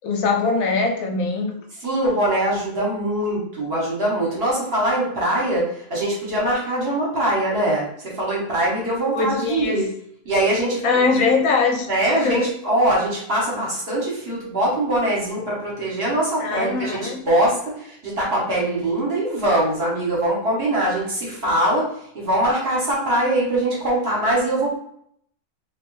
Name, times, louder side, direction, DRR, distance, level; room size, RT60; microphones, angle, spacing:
voice 1, 0.0-1.5 9.1-9.8 10.8-12.5 16.4-17.3, left 4 dB, 75° left, 1 dB, 1.1 m, -22 dB
voice 2, 1.8-9.9 10.2-10.8 11.9-17.0 17.2-21.9 22.1-24.8, right 1 dB, 45° right, -5 dB, 1.4 m, -22 dB
3.2 x 2.8 x 3.1 m, 0.67 s
omnidirectional pair, 1.5 m